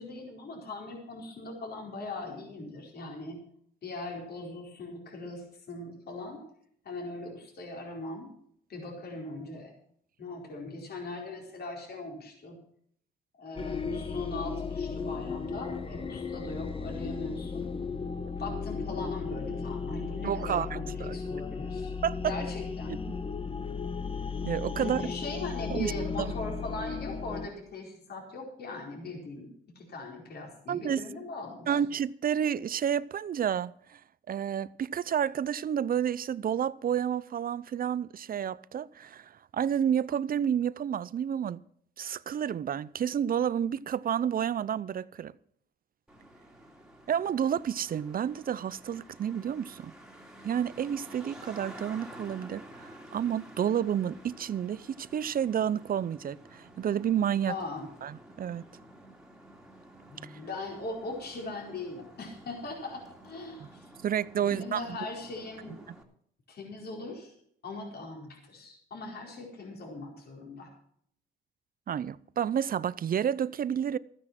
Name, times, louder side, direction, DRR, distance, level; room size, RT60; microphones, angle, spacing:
voice 1, 0.0-3.4 3.8-6.4 6.8-8.3 8.7-9.7 10.2-12.6 13.3-17.7 18.4-21.9 22.3-22.9 24.8-31.8 57.5-57.9 60.1-63.9 64.4-65.8 66.5-67.4 67.6-70.7, left 2 dB, 55° left, 4.5 m, -40 dB
sound 1, 13.5-27.5, left 5 dB, 25° left, 1.1 m, -35 dB
voice 2, 20.2-21.2 22.0-22.3 23.1-23.2 24.4-25.0 25.7-25.9 26.2-26.3 30.7-31.0 31.7-34.0 34.3-41.6 42.0-45.3 47.1-49.9 50.4-57.5 58.0-58.6 60.2-60.3 64.0-64.8 65.9-66.0 71.9-74.0, right 9 dB, 45° right, 0.6 m, -30 dB
Traffic noise roadway noise, 46.1-66.0, right 1 dB, 5° right, 2.5 m, -51 dB
14.0 x 9.9 x 6.0 m
cardioid pair, 90°, 20 cm